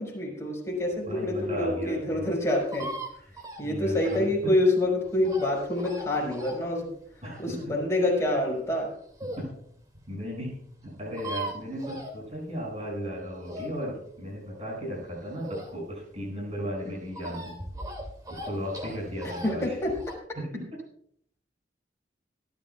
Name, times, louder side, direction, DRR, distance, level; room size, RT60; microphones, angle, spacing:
voice 1, 0.0-2.9 3.6-6.9 7.4-8.9 19.4-19.9, left 1 dB, 15° left, -3 dB, 5.4 m, -27 dB
sound 1, 0.9-9.5 10.0-10.1 10.3-10.4 10.5-10.6 10.8-12.7 13.0-16.1 16.4-20.1, right 1 dB, 20° right, 2.5 m, -40 dB
voice 2, 1.0-2.2 3.6-4.5 7.2-7.6 9.4-9.5 10.1-10.6 10.8-17.6 18.3-19.8 20.4-20.7, equal, 35° right, -4 dB, 6.9 m, -35 dB
26.0 x 12.0 x 2.4 m, 0.66 s
head